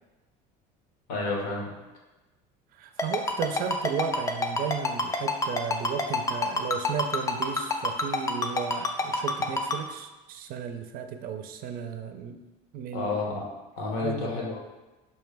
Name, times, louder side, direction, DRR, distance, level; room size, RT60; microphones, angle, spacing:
voice 1, 1.1-1.7 12.9-13.4 13.8-14.6, left 3 dB, 90° left, -1 dB, 1.0 m, -30 dB
voice 2, 2.7-12.4 12.7-13.1 14.0-14.3, right 7 dB, 55° right, 8 dB, 0.4 m, -34 dB
Ringtone, 3.0-9.8, left 3 dB, 20° left, 0.3 m, -26 dB
5.3 x 2.2 x 3.3 m, 1.1 s
cardioid pair, 125°, 18 cm